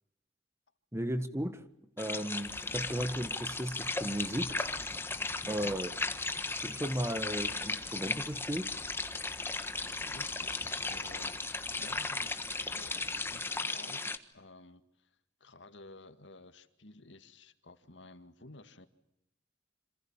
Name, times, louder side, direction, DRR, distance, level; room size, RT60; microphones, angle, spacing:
voice 1, 0.9-1.6 2.0-4.6 5.5-5.9 6.5-8.7, equal, 15° right, 1.6 m, -35 dB
sound 1, 2.0-14.2, left 3 dB, 15° left, 1.4 m, -36 dB
sound 2, 2.4-13.6, left 2 dB, 60° left, 2.1 m, -55 dB
voice 2, 9.9-12.4 12.7-15.2 15.4-18.9, left 2 dB, 85° left, 2.1 m, -53 dB
27.0 x 27.0 x 7.4 m
head